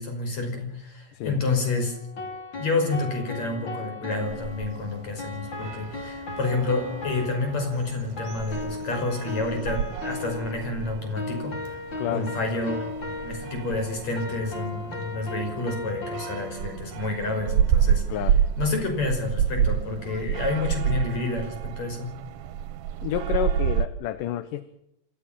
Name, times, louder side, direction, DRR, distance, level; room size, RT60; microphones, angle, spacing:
voice 1, 0.0-2.0 2.6-11.8 12.1-12.9 13.2-18.0 18.6-22.1, left 3 dB, 55° left, 5 dB, 6.9 m, -29 dB
voice 2, 1.1-1.4 12.0-12.3 18.1-18.4 23.0-24.6, left 11 dB, 80° left, 13 dB, 2.7 m, -30 dB
sound 1, 1.5-16.9, left 2 dB, 35° left, 3.3 m, -37 dB
sound 2, 4.2-23.9, right 9 dB, 75° right, 2.4 m, -30 dB
27.0 x 15.0 x 7.4 m, 0.78 s
omnidirectional pair, 3.8 m